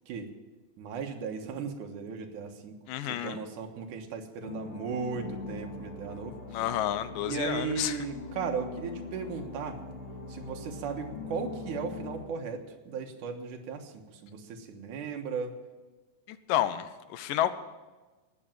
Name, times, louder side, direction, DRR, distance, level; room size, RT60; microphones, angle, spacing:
voice 1, 0.8-2.7 3.1-6.3 7.2-9.8 10.3-15.6, right 5 dB, 70° right, 3 dB, 2.7 m, -36 dB
voice 2, 2.9-3.4 6.5-8.0 16.3-17.5, left 12 dB, 85° left, 12 dB, 2.4 m, -30 dB
sound 1, 4.4-12.2, left 3 dB, 55° left, 4.2 m, -42 dB
18.5 x 6.9 x 9.0 m, 1.2 s
omnidirectional pair, 3.7 m